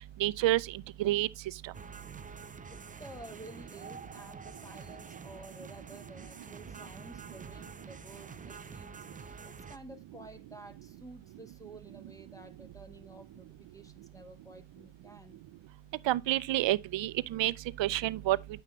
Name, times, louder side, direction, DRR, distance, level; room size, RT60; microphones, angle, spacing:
voice 1, 0.2-0.6 1.0-1.3 16.1-18.4, right 15 dB, 70° right, 0.6 m, -28 dB
sound 1, 1.7-9.8, right 5 dB, 20° right, 0.4 m, -48 dB
voice 2, 2.7-15.4, right 1 dB, 5° left, 1.3 m, -52 dB
8.8 x 6.0 x 3.0 m
cardioid pair, 95°, 47 cm